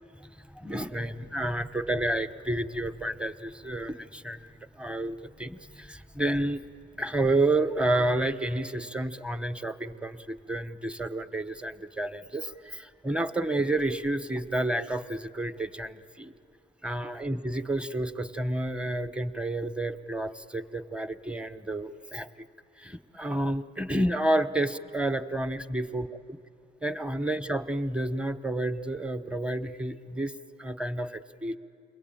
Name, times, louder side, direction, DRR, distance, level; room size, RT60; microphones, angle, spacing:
voice 1, 0.6-4.4 4.8-5.6 5.9-6.6 7.0-12.5 13.0-16.3 16.8-22.3 22.8-26.1 26.8-30.3 30.6-31.6, right 1 dB, 5° right, 10 dB, 0.9 m, -30 dB
30.0 x 22.0 x 9.0 m, 2.6 s
cardioid pair, 90°, 20 cm